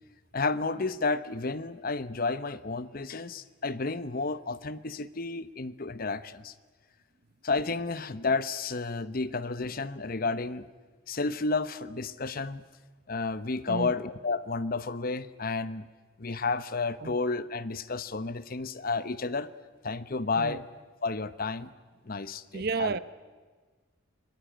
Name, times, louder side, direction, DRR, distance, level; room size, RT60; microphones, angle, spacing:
voice 1, 0.3-6.5 7.4-10.6 11.1-12.6 13.1-15.9 16.2-19.5 19.8-20.6 21.0-21.7 22.0-23.0, left 3 dB, 45° left, 14 dB, 0.9 m, -31 dB
voice 2, 22.5-23.0, right 4 dB, 50° right, 15 dB, 0.8 m, -31 dB
25.0 x 21.5 x 9.1 m, 1.4 s
head